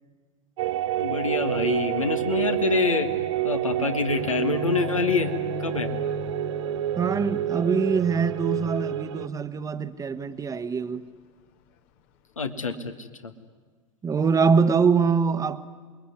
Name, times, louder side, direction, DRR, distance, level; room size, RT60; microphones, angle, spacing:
sound 1, 0.6-9.3, right 13 dB, 60° right, 0.7 m, -28 dB
voice 1, 1.0-3.1 3.4-5.3 5.6-5.9 12.4-13.3, left 4 dB, 85° left, 1.9 m, -26 dB
sound 2, 4.1-10.6 11.0-11.2 11.6-12.1 12.5-12.6, left 10 dB, 50° left, 1.5 m, -40 dB
voice 2, 7.0-11.1 14.0-15.6, right 5 dB, 20° right, 1.2 m, -24 dB
27.5 x 21.5 x 9.6 m
figure-of-eight pair, 80°, 17 cm